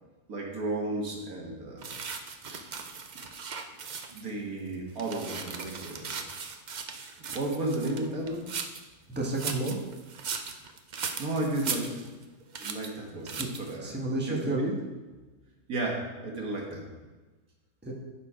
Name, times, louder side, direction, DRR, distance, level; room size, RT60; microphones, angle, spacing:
voice 1, 0.3-2.0 2.4-2.6 4.1-6.2 7.2-8.5 11.2-12.0 12.6-14.0 14.3-14.4 15.7-17.0, right 2 dB, 75° right, -1 dB, 2.0 m, -33 dB
sound 1, 1.8-4.3 4.7-8.9 9.2-12.3 12.5-12.9 13.3-13.8, right 5 dB, 55° right, 0.5 m, -38 dB
voice 2, 9.1-9.8 13.3-13.5 13.8-14.7 17.8-17.9, right 2 dB, 10° right, -2 dB, 1.2 m, -30 dB
12.0 x 4.3 x 4.9 m, 1.2 s
omnidirectional pair, 1.6 m